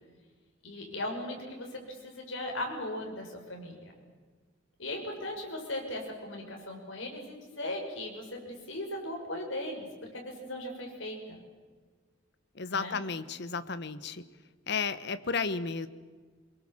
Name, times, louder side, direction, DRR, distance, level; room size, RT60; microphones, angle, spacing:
voice 1, 0.6-3.9 4.8-11.2 12.7-13.0, left 1 dB, 75° left, 1 dB, 6.3 m, -38 dB
voice 2, 12.6-14.2 14.7-15.9, left 5 dB, 60° left, 13 dB, 1.2 m, -33 dB
24.5 x 22.5 x 7.5 m, 1.5 s
head